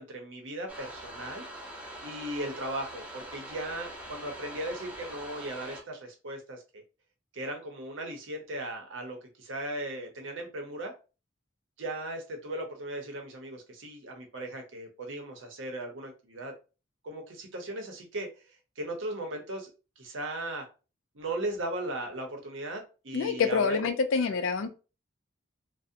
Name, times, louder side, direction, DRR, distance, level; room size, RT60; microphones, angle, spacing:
voice 1, 0.0-1.4 2.0-6.8 7.3-10.9 11.8-16.5 17.0-18.5 18.8-19.7 20.0-20.7 21.1-23.8, right 1 dB, 75° right, 4 dB, 0.7 m, -37 dB
sound 1, 0.7-5.8, right 1 dB, 5° right, 0.4 m, -43 dB
voice 2, 23.1-24.7, left 5 dB, 85° left, 8 dB, 0.4 m, -27 dB
2.5 x 2.1 x 2.7 m, 0.32 s
head